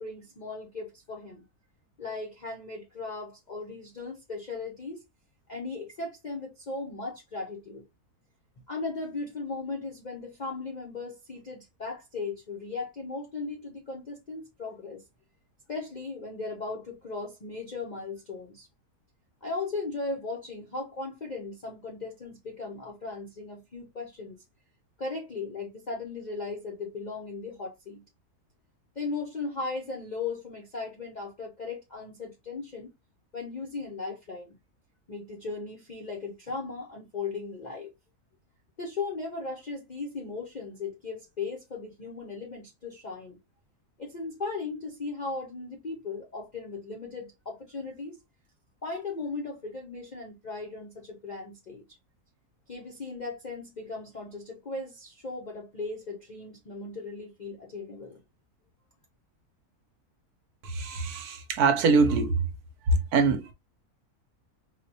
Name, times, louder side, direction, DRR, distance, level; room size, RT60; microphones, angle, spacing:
voice 1, 0.0-1.4 2.0-5.0 5.5-7.8 8.7-15.0 15.7-18.7 19.4-24.4 25.0-28.0 29.0-32.9 33.3-34.6 35.1-37.9 38.8-43.4 44.0-48.2 48.8-52.0 52.7-58.2, left 3 dB, 55° left, 0.4 m, -37 dB
voice 2, 60.6-62.5 62.9-63.5, right 4 dB, 80° right, 1.2 m, -24 dB
3.9 x 2.1 x 2.7 m
omnidirectional pair, 1.6 m